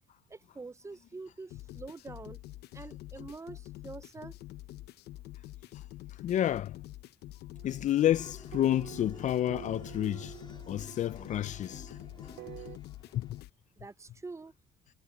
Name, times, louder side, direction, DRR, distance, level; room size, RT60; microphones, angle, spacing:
voice 1, 0.3-2.4 2.7-4.4 13.8-14.5, right 3 dB, 15° right, 0.6 m, -45 dB
sound 1, 1.5-13.5, left 15 dB, 75° left, 0.7 m, -47 dB
voice 2, 6.2-6.8 7.6-10.3 10.7-11.9 13.2-13.3, left 12 dB, 45° left, 0.4 m, -29 dB
sound 2, 7.5-12.8, right 15 dB, 80° right, 5.1 m, -49 dB
sound 3, 8.0-13.4, left 5 dB, 25° left, 3.2 m, -53 dB
cardioid pair, 110°, 17 cm